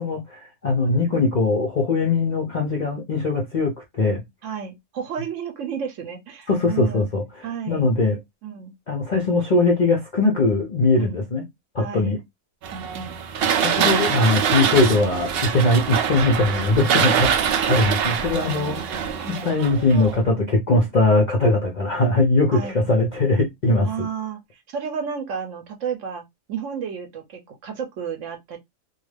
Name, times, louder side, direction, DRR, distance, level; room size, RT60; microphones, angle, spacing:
voice 1, 0.0-4.2 6.5-8.2 8.9-11.4 11.7-12.2 13.6-17.3 17.7-19.0 19.4-24.1, left 2 dB, 55° left, 0.5 m, -21 dB
voice 2, 4.4-7.1 7.4-7.9 8.4-8.7 11.0-11.2 11.8-12.1 12.7-13.2 16.9-17.2 18.2-19.6 22.5-22.8 23.8-26.2 26.5-28.6, right 7 dB, 65° right, 0.9 m, -32 dB
sound 1, 12.6-20.3, right 8 dB, 85° right, 0.5 m, -24 dB
2.4 x 2.4 x 3.2 m
omnidirectional pair, 1.6 m